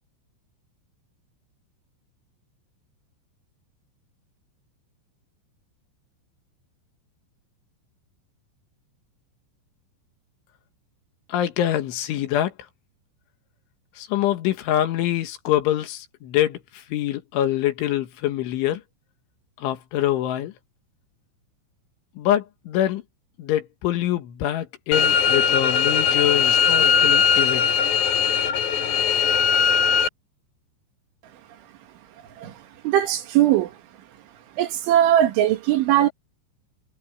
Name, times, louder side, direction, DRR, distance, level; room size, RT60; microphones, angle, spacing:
voice 1, 11.3-12.5 14.0-18.8 19.6-20.5 22.2-23.0 23.4-27.7, left 12 dB, 75° left, 3.9 m, -25 dB
sound 1, 24.9-30.1, left 7 dB, 55° left, 3.0 m, -19 dB
voice 2, 32.8-33.7 34.6-36.1, right 12 dB, 75° right, 4.1 m, -19 dB
omnidirectional pair, 5.7 m